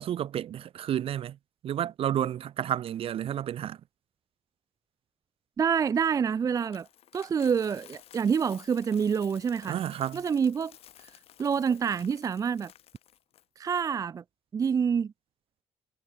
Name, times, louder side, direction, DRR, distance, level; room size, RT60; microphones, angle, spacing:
voice 1, 0.0-1.4 1.6-3.8 9.7-10.2, right 11 dB, 65° right, 1.1 m, -31 dB
voice 2, 5.6-6.9 7.1-9.8 10.1-10.7 11.4-12.7 13.6-14.2 14.5-15.1, right 6 dB, 35° right, 0.4 m, -27 dB
Coin (dropping), 6.0-13.4, left 11 dB, 70° left, 3.5 m, -54 dB
cardioid pair, 95°, 10 cm